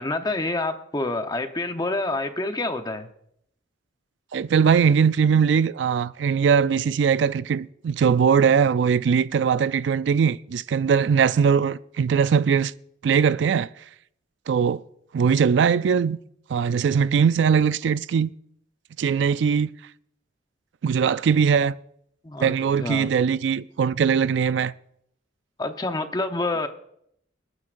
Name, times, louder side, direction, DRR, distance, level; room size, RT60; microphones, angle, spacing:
voice 1, 0.0-3.1 22.2-22.5 22.8-23.1 25.6-26.7, left 2 dB, 20° left, 0.8 m, -27 dB
voice 2, 4.3-12.7 13.0-13.7 14.5-14.8 15.1-16.2 16.5-18.3 19.0-19.7 20.8-21.7 22.4-24.7, right 6 dB, 70° right, 0.3 m, -20 dB
27.0 x 9.4 x 2.5 m
head